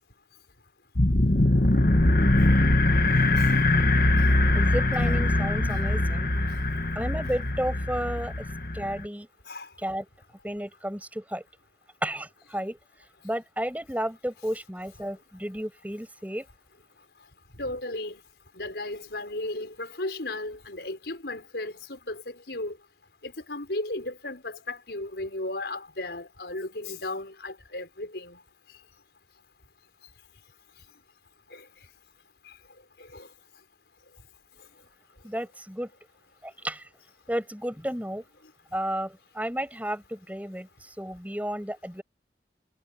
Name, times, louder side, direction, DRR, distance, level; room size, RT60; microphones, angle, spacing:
sound 1, 1.0-9.1, left 2 dB, 50° left, 1.5 m, -22 dB
voice 1, 4.5-6.3 7.0-8.3 8.7-9.3 9.8-10.1 10.4-11.4 12.0-12.8 13.2-16.5 35.2-35.9 36.4-36.9 37.3-38.2 38.7-42.0, equal, 10° right, 6.9 m, -32 dB
voice 2, 17.6-18.2 18.5-22.8 23.2-28.4 31.5-31.6 32.4-32.5 33.0-33.3, left 2 dB, 75° left, 4.8 m, -35 dB
head